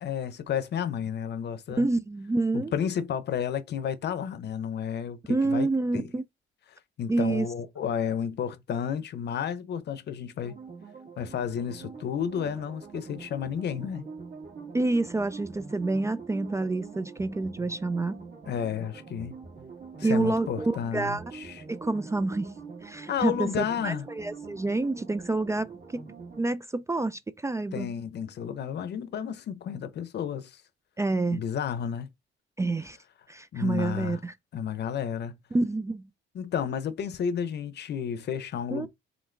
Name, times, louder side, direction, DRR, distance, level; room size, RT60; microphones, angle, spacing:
voice 1, 0.0-1.9 2.5-6.1 7.0-10.6 11.2-14.0 18.5-19.4 20.0-21.6 23.1-24.0 27.7-30.6 31.3-32.1 33.5-34.2 34.5-35.4 36.3-38.9, left 8 dB, 60° left, 0.8 m, -32 dB
voice 2, 1.8-2.7 5.3-6.2 7.1-7.5 14.7-18.3 20.0-21.3 21.7-27.9 31.0-31.4 32.6-33.0 33.3-34.3 35.5-36.1 38.7-38.9, right 2 dB, 15° right, 0.3 m, -28 dB
sound 1, 10.4-26.4, right 5 dB, 50° right, 1.9 m, -44 dB
3.9 x 3.5 x 3.4 m
cardioid pair, 90°, 20 cm